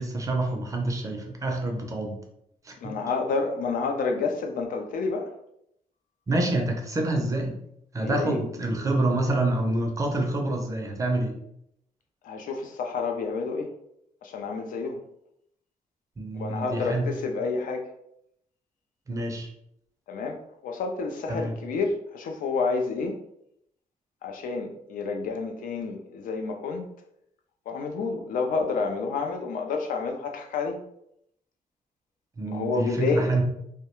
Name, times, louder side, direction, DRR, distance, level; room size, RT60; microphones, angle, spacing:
voice 1, 0.0-2.2 2.7-2.9 6.3-7.6 7.9-11.3 16.2-17.1 19.1-19.5 21.3-21.5 32.4-33.4, right 2 dB, 25° right, 1 dB, 0.4 m, -27 dB
voice 2, 2.8-5.3 8.0-8.4 12.2-13.7 14.2-15.0 16.3-17.9 20.1-20.4 20.6-23.1 24.2-26.8 27.7-30.8 32.5-33.3, left 4 dB, 75° left, 4 dB, 0.4 m, -29 dB
2.3 x 2.1 x 2.9 m, 0.75 s
wide cardioid pair, 160°, 14 cm